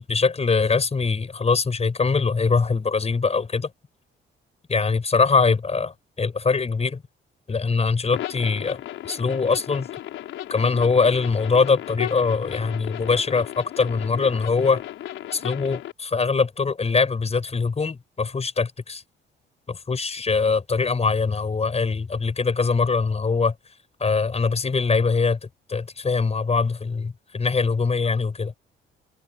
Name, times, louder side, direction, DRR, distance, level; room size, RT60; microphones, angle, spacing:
voice 1, 0.0-3.7 4.7-7.0 7.5-9.9 10.5-14.8 15.3-19.0 19.7-23.5 24.0-25.4 25.7-28.5, left 4 dB, 30° left, 6.2 m, -22 dB
sound 1, 8.1-15.9, left 13 dB, 85° left, 5.8 m, -35 dB
cardioid pair, 90°, 20 cm